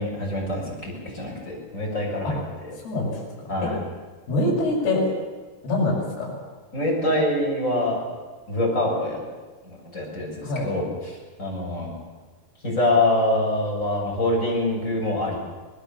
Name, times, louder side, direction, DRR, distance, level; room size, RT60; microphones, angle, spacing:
voice 1, 0.0-2.7 3.5-3.8 6.7-8.0 8.5-9.2 9.7-10.3 10.6-11.9 12.6-15.4, left 1 dB, 15° left, -3 dB, 7.2 m, -25 dB
voice 2, 2.8-3.2 3.6-3.7 4.3-5.1 5.6-6.4 10.4-10.7, left 2 dB, 65° left, -4 dB, 8.3 m, -24 dB
24.5 x 20.0 x 7.2 m, 1.3 s
omnidirectional pair, 5.0 m